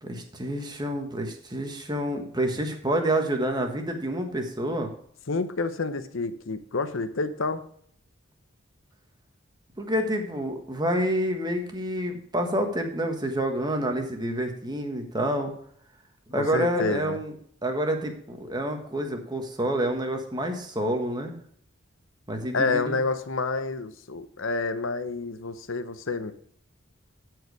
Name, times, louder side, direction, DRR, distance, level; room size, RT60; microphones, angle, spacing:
voice 1, 0.0-4.9 9.8-15.5 16.3-17.3 17.6-21.3 22.3-23.0, right 1 dB, 20° right, 4 dB, 1.4 m, -28 dB
voice 2, 5.3-7.6 16.4-17.2 22.5-26.3, left 3 dB, 70° left, 11 dB, 0.8 m, -29 dB
13.5 x 4.8 x 4.7 m, 0.63 s
head